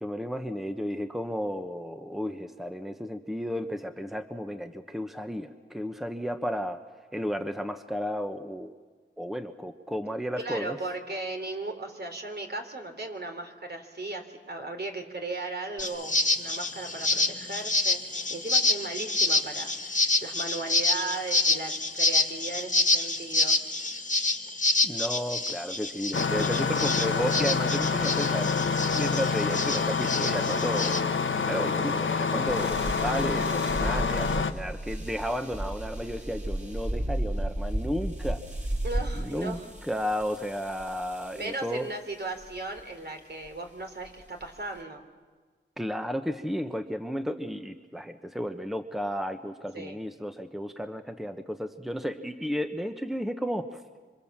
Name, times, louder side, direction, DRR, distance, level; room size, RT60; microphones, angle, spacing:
voice 1, 0.0-6.8 7.1-8.7 9.2-10.8 24.8-28.5 28.9-38.4 39.2-39.6 39.9-41.9 45.8-53.8, equal, ahead, 7 dB, 1.2 m, -33 dB
voice 2, 10.4-23.6 33.3-33.6 38.8-39.7 41.3-45.0 49.7-50.0, right 2 dB, 55° right, 4 dB, 3.5 m, -37 dB
sound 1, 15.8-31.0, left 2 dB, 35° left, 1.8 m, -27 dB
Engine starting, 26.1-34.5, left 5 dB, 70° left, 1.2 m, -27 dB
sound 2, 32.5-41.6 42.4-42.8 43.5-43.6 44.0-44.8, right 1 dB, 35° right, 5.7 m, -34 dB
26.5 x 25.0 x 7.5 m, 1.4 s
wide cardioid pair, 60°, 21 cm